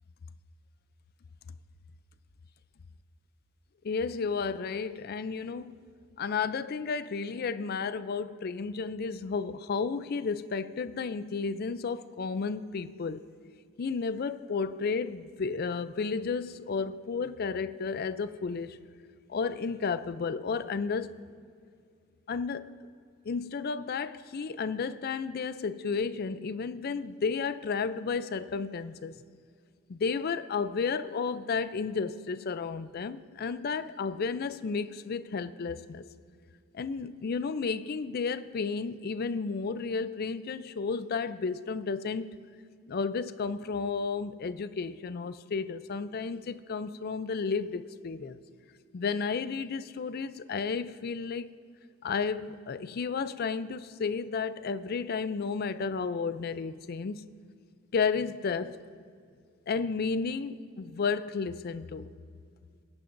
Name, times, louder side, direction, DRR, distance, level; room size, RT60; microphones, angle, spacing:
voice 1, 3.8-5.7 6.2-13.2 13.8-18.8 19.3-21.1 22.3-22.7 23.2-29.2 29.9-36.0 36.7-42.3 42.9-48.4 48.9-51.5 52.0-57.3 57.9-58.8 59.7-62.1, left 5 dB, 45° left, 0.4 m, -32 dB
21.5 x 10.5 x 2.6 m
head